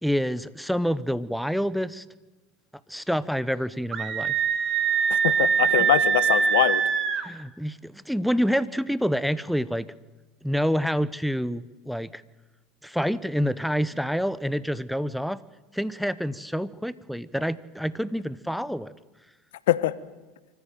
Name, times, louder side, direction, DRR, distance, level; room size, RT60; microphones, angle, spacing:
voice 1, 0.0-2.0 2.9-4.4 7.2-9.9 10.4-12.2 12.8-15.4 15.7-18.9, equal, ahead, 18 dB, 1.0 m, -27 dB
Screaming, 3.9-7.3, right 7 dB, 40° right, 1.9 m, -23 dB
voice 2, 5.1-6.8 19.7-19.9, left 14 dB, 80° left, 16 dB, 1.1 m, -23 dB
25.0 x 14.5 x 9.3 m, 1.2 s
hypercardioid pair, 85°, 0 cm